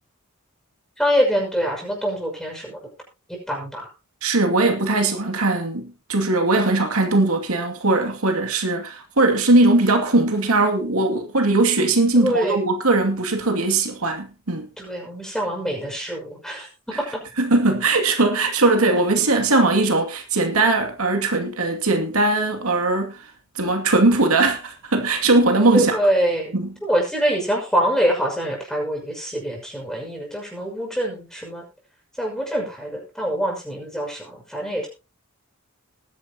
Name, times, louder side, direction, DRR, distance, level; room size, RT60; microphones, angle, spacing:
voice 1, 1.0-2.8 3.3-3.9 12.2-12.6 14.8-16.7 17.0-17.2 25.7-26.6 26.8-31.6 32.2-34.9, equal, ahead, 5.8 m, -24 dB
voice 2, 4.2-14.7 17.4-23.2 23.6-26.0 26.5-26.7, right 2 dB, 85° right, 2.4 m, -20 dB
20.0 x 10.5 x 2.9 m
head